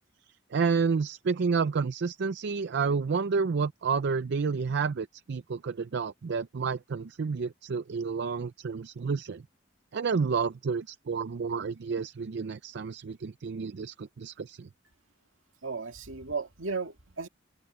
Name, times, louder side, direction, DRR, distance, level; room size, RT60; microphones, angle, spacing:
voice 1, 0.5-9.4 9.9-14.7, right 5 dB, 60° right, 0.5 m, -30 dB
voice 2, 15.6-17.3, right 4 dB, 75° right, 1.9 m, -35 dB
head